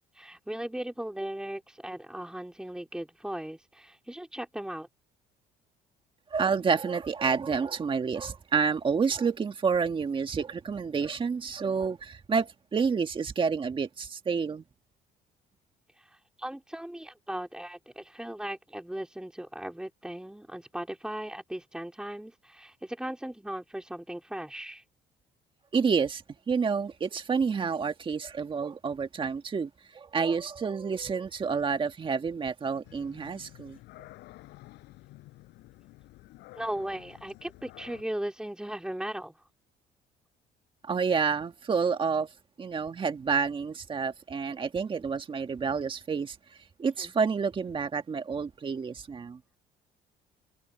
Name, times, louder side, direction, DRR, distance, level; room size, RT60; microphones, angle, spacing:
voice 1, 0.0-4.9 15.9-24.8 36.6-39.4 47.0-47.1, right 1 dB, 5° right, 4.0 m, -37 dB
voice 2, 6.3-14.6 25.7-33.8 40.8-42.3 42.6-46.4 46.8-49.4, right 5 dB, 30° right, 1.8 m, -29 dB
sound 1, 32.8-38.0, left 18 dB, 85° left, 7.4 m, -51 dB
cardioid pair, 110°, 17 cm